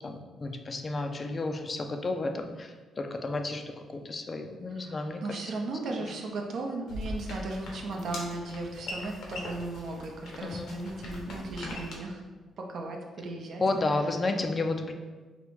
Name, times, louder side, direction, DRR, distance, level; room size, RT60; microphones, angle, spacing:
voice 1, 0.0-5.4 10.4-10.7 13.6-14.9, left 2 dB, 35° left, 6 dB, 0.3 m, -32 dB
voice 2, 4.8-12.2 12.6-13.6, right 2 dB, 60° right, 2 dB, 0.5 m, -36 dB
sound 1, 6.9-11.9, left 1 dB, 75° left, 0.7 m, -40 dB
2.9 x 2.5 x 3.5 m, 1.3 s
cardioid pair, 90°, 0 cm